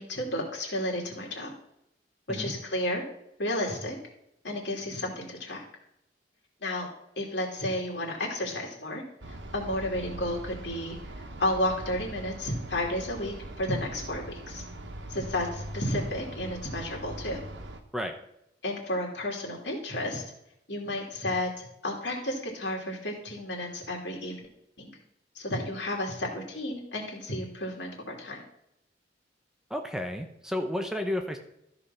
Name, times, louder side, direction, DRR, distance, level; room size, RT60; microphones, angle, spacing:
voice 1, 0.0-1.5 2.3-3.0 3.4-4.0 4.4-5.6 6.6-6.9 7.2-9.0 9.5-11.0 11.4-14.6 15.1-17.4 18.6-20.2 20.7-24.3 24.8-25.0 25.3-28.4, left 1 dB, 80° left, -1 dB, 2.9 m, -32 dB
sound 1, 9.2-17.8, right 1 dB, 90° right, 1.1 m, -41 dB
voice 2, 29.7-31.4, left 1 dB, 5° right, 4 dB, 0.8 m, -32 dB
13.0 x 5.0 x 5.7 m, 0.81 s
head